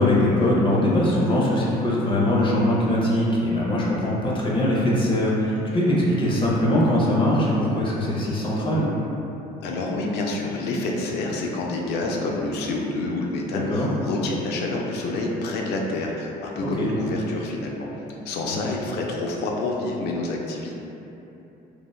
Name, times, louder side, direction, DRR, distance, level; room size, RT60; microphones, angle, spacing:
voice 1, 0.0-8.9 13.5-13.9 16.6-16.9 18.4-18.6, left 1 dB, 30° left, -5 dB, 0.6 m, -21 dB
voice 2, 9.6-17.9 18.3-20.8, left 2 dB, 80° left, -1 dB, 0.4 m, -28 dB
3.2 x 2.3 x 2.3 m, 3.0 s
cardioid pair, 110°, 17 cm